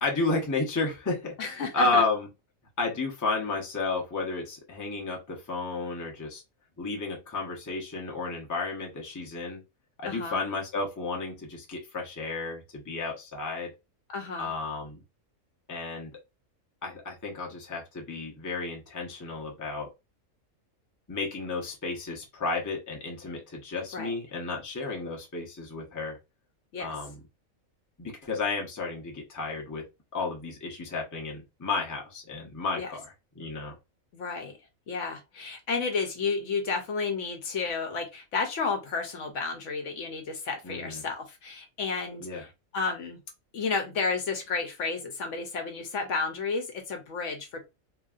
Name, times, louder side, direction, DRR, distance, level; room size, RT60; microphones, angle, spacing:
voice 1, 0.0-1.3 1.7-2.3 2.8-6.4 6.8-9.6 10.0-13.7 14.4-15.0 15.7-16.2 16.8-19.9 21.1-26.2 26.8-27.2 28.0-29.9 30.1-33.8 40.6-41.0 42.2-42.4, left 3 dB, 20° left, 0 dB, 0.6 m, -32 dB
voice 2, 1.4-2.0 10.0-10.4 14.1-14.5 23.9-24.1 26.7-26.9 32.8-32.9 34.1-34.6 34.9-43.2 43.5-47.6, left 4 dB, 65° left, 5 dB, 1.0 m, -32 dB
3.0 x 2.6 x 2.4 m, 0.24 s
omnidirectional pair, 1.4 m